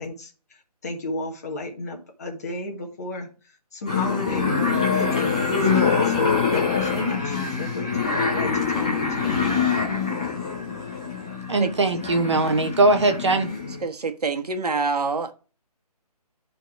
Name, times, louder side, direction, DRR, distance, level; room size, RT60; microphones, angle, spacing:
voice 1, 0.0-3.3 3.7-4.5 4.9-9.4, left 2 dB, 25° left, 1.6 m, -34 dB
sound 1, 3.9-13.8, left 5 dB, 10° left, 0.7 m, -24 dB
voice 2, 11.5-13.5, right 2 dB, 45° right, 1.1 m, -20 dB
voice 3, 13.8-15.3, right 4 dB, 75° right, 1.5 m, -26 dB
11.0 x 4.0 x 4.7 m
hypercardioid pair, 180°, 20 cm